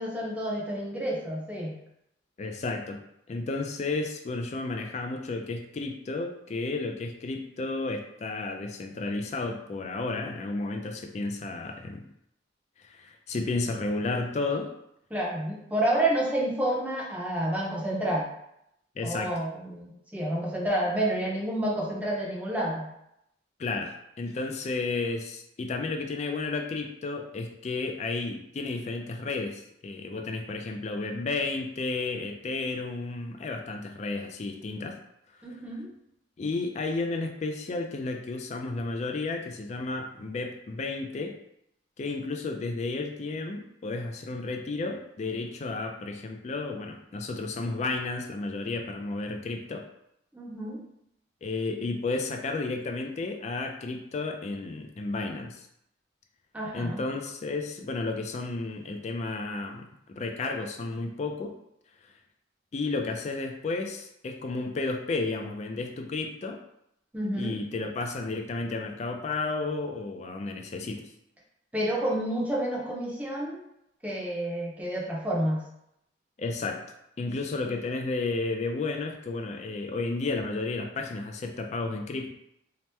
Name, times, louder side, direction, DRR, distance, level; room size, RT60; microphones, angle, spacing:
voice 1, 0.0-1.7 15.1-18.3 19.0-22.9 35.4-35.9 50.3-50.8 56.5-57.0 67.1-67.6 71.7-73.6 74.0-75.6, right 1 dB, 10° right, -4 dB, 0.6 m, -29 dB
voice 2, 2.4-12.0 12.8-14.7 19.0-19.3 23.6-35.0 35.4-35.5 36.4-41.4 42.0-49.9 51.4-55.7 56.7-61.5 62.0-62.1 62.7-66.6 67.3-71.1 76.4-76.8 77.2-82.3, left 3 dB, 35° left, 4 dB, 0.3 m, -32 dB
2.9 x 2.1 x 3.3 m, 0.79 s
head